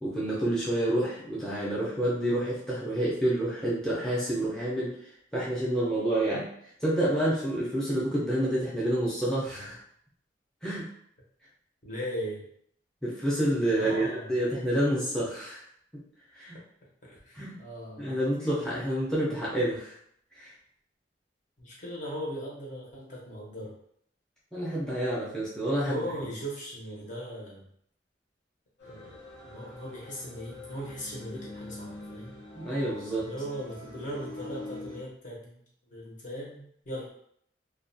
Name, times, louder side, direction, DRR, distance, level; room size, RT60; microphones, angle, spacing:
voice 1, 0.0-4.9 5.3-6.5 6.8-9.8 10.6-10.9 13.0-15.6 16.4-16.6 17.3-17.5 18.0-19.9 20.4-20.5 24.5-26.0 32.6-33.3, right 1 dB, 5° left, -8 dB, 0.6 m, -28 dB
voice 2, 11.8-12.4 13.7-14.3 17.0-18.2 21.6-23.7 25.9-27.7 28.8-29.2 29.4-32.4 33.2-35.6 35.9-37.1, equal, 45° left, -4 dB, 0.8 m, -38 dB
sound 1, 28.8-35.0, left 2 dB, 80° left, 0.7 m, -45 dB
2.4 x 2.2 x 2.6 m, 0.66 s
head